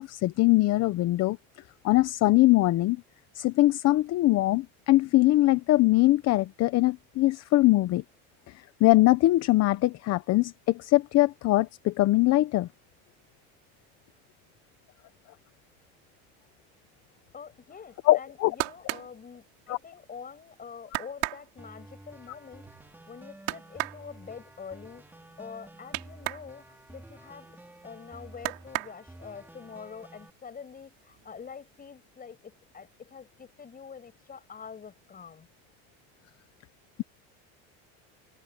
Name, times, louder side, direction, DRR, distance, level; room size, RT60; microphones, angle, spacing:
voice 1, 0.0-1.4 1.8-3.0 3.3-8.0 8.8-12.7 18.1-18.5 19.7-19.8, left 17 dB, 50° left, 1.0 m, -22 dB
voice 2, 17.3-27.5 27.8-35.5, left 6 dB, 25° left, 6.6 m, -46 dB
sound 1, 18.1-20.1 20.5-20.6 20.9-26.5 26.8-27.9 28.3-29.4 29.9-30.5 30.7-31.5 31.8-31.9, right 29 dB, 80° right, 5.9 m, -36 dB
sound 2, 21.6-30.3, right 1 dB, 5° right, 4.4 m, -51 dB
supercardioid pair, 125°, 33 cm